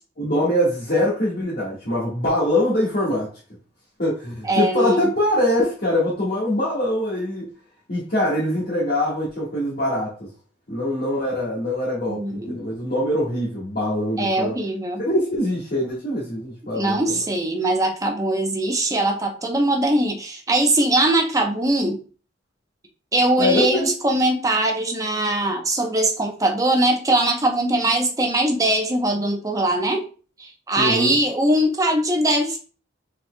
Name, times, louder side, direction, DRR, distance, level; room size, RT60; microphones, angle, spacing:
voice 1, 0.2-3.3 4.0-7.5 7.9-10.3 10.7-14.5 15.0-17.0 23.4-23.9 30.8-31.1, left 1 dB, 50° left, -7 dB, 1.6 m, -23 dB
voice 2, 4.4-5.1 12.1-12.6 14.2-15.0 16.7-22.0 23.1-30.1 30.4-32.6, right 1 dB, 20° right, 3 dB, 0.8 m, -21 dB
5.5 x 4.1 x 2.2 m, 0.37 s
head